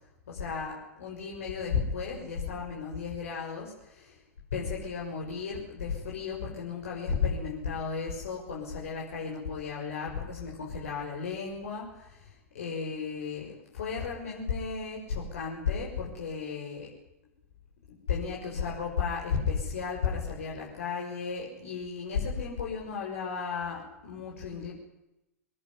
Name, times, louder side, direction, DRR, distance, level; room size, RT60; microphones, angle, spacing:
voice 1, 0.3-4.2 4.5-16.9 17.9-24.7, left 6 dB, 65° left, -2 dB, 6.6 m, -34 dB
23.5 x 20.0 x 9.9 m, 0.91 s
figure-of-eight pair, 95°, 8 cm